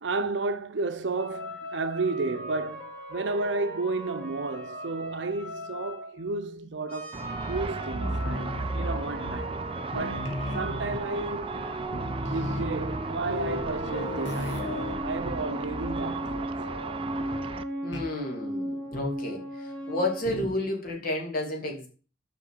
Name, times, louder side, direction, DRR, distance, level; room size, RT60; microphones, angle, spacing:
voice 1, 0.0-9.6 9.9-11.6 12.3-16.6, right 3 dB, 65° right, 0.7 m, -32 dB
sound 1, 1.2-6.4 6.9-20.5, equal, 10° left, 3.6 m, -37 dB
Car / Traffic noise roadway noise / Engine, 7.1-17.6, right 4 dB, 30° right, 0.4 m, -36 dB
sound 2, 7.3-9.7 9.9-11.2 11.6-11.7 11.9-16.0 16.3-16.6 17.9-18.2 18.9-19.3 20.2-20.7, left 1 dB, 70° left, 2.1 m, -35 dB
voice 2, 17.8-21.9, left 1 dB, 45° left, 2.6 m, -31 dB
6.7 x 5.9 x 6.6 m
head